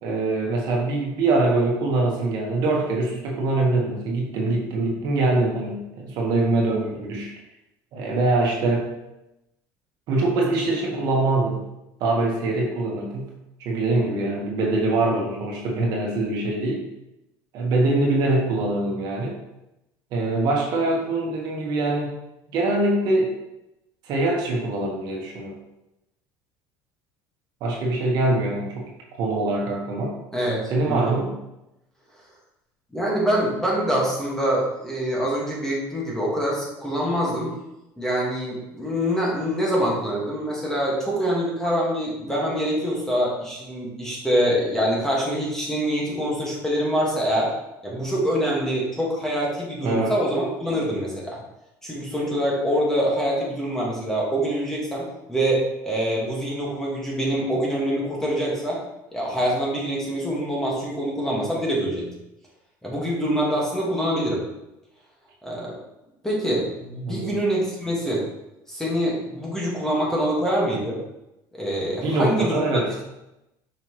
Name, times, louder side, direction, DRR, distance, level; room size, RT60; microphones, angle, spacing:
voice 1, 0.0-7.3 7.9-8.9 10.1-11.6 12.0-13.3 13.6-16.8 17.5-19.4 20.1-22.1 22.5-23.3 24.0-25.6 27.6-28.8 29.2-30.2 30.7-31.3 49.8-50.1 67.1-67.4 72.0-72.9, right 2 dB, 55° right, -1 dB, 1.5 m, -23 dB
voice 2, 30.9-31.2 32.9-37.5 38.0-47.5 47.8-51.4 51.8-58.8 59.1-62.1 62.8-64.4 65.4-65.8 66.2-68.2 68.7-71.0 71.5-72.6, equal, 5° left, -4 dB, 1.7 m, -25 dB
5.9 x 5.6 x 3.1 m, 0.90 s
cardioid pair, 145°, 8 cm